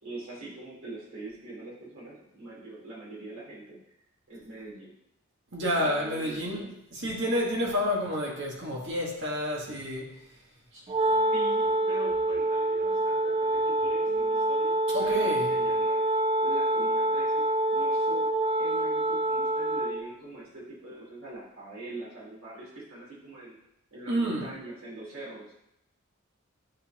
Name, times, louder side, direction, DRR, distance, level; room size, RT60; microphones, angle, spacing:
voice 1, 0.0-3.8 4.3-4.9 5.8-6.7 10.7-10.8 11.3-16.0 16.4-17.4 17.7-18.3 18.6-23.6 23.9-25.5, right 2 dB, 75° right, -7 dB, 2.7 m, -43 dB
voice 2, 5.5-6.6 6.9-10.2 14.9-15.5 24.1-24.5, equal, 55° right, -2 dB, 1.6 m, -29 dB
Wind instrument woodwind instrument, 10.9-20.1, right 1 dB, 25° right, 0.3 m, -26 dB
9.6 x 4.1 x 2.9 m, 0.78 s
head